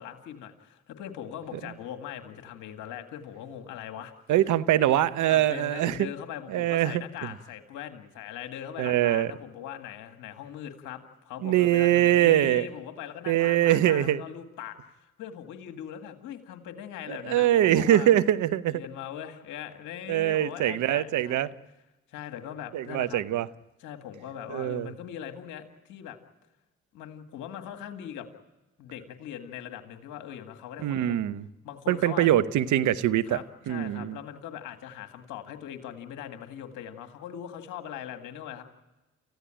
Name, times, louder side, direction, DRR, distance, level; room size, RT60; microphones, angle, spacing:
voice 1, 0.0-4.1 5.3-14.9 15.2-18.1 18.7-21.5 22.1-23.2 23.8-26.2 26.9-28.3 28.8-31.2 31.6-32.3 33.3-38.6, left 10 dB, 85° left, 2.0 m, -40 dB
voice 2, 4.3-6.1 6.5-7.3 8.8-9.3 11.4-12.7 13.3-14.2 17.1-18.8 20.1-21.5 22.7-23.5 24.5-24.9 30.8-31.4 31.9-34.2, right 12 dB, 75° right, 0.9 m, -23 dB
29.0 x 15.0 x 8.9 m
hypercardioid pair, 40°, 30 cm